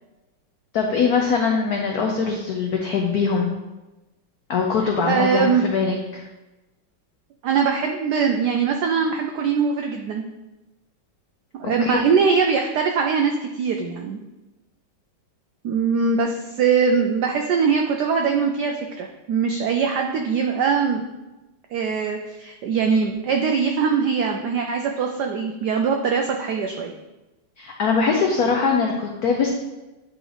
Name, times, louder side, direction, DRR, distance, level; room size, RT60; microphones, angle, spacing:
voice 1, 0.7-3.5 4.5-6.2 11.8-12.0 27.6-29.5, left 5 dB, 80° left, 1 dB, 0.8 m, -22 dB
voice 2, 5.0-5.6 7.4-10.2 11.6-14.2 15.6-21.1 21.7-26.9, right 5 dB, 85° right, 3 dB, 0.9 m, -22 dB
9.1 x 3.1 x 3.8 m, 1.1 s
omnidirectional pair, 2.3 m